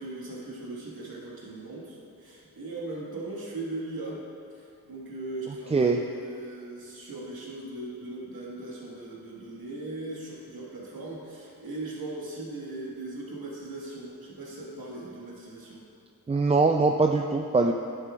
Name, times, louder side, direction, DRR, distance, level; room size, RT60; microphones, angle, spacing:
voice 1, 0.0-4.2 4.5-15.8, right 2 dB, 75° right, -4 dB, 1.7 m, -39 dB
voice 2, 16.3-17.7, right 3 dB, 20° right, 3 dB, 0.3 m, -22 dB
9.9 x 7.5 x 2.4 m, 2.6 s
cardioid pair, 50°, 37 cm